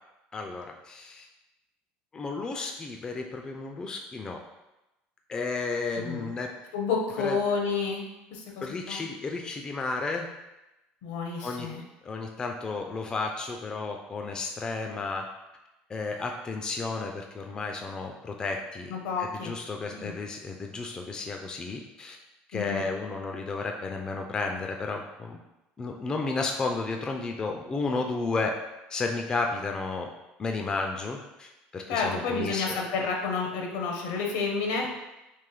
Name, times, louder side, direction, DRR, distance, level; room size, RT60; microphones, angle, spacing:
voice 1, 0.3-1.3 2.1-4.4 5.3-6.5 7.2-7.4 8.6-10.3 11.4-11.7 12.0-15.3 15.9-22.2 22.5-25.4 25.8-28.5 28.9-30.1 30.4-32.9, left 3 dB, 20° left, 3 dB, 0.3 m, -32 dB
voice 2, 6.0-6.3 6.7-8.1 8.3-9.0 11.0-11.8 18.9-19.5 19.9-20.1 22.5-22.9 31.9-34.9, left 4 dB, 80° left, 1 dB, 0.8 m, -30 dB
3.2 x 2.5 x 3.7 m, 0.97 s
cardioid pair, 130°, 4 cm